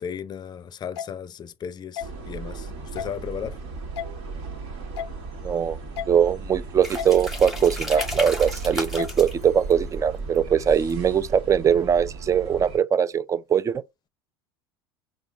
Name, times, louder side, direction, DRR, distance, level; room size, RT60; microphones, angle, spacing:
voice 1, 0.0-3.6, left 8 dB, 35° left, 0.5 m, -35 dB
sound 1, 1.0-1.1 2.0-2.1 3.0-3.1 4.0-4.1 5.0-5.1 6.0-6.1 7.0-7.1 8.0-8.1 9.0-9.1, left 9 dB, 90° left, 0.4 m, -31 dB
sound 2, 2.0-12.8, right 3 dB, 70° right, 1.4 m, -36 dB
voice 2, 5.4-5.8 6.1-13.8, right 8 dB, 25° right, 0.4 m, -21 dB
sound 3, 6.8-11.5, equal, ahead, 1.2 m, -35 dB
5.1 x 2.4 x 3.4 m
hypercardioid pair, 80°, 13 cm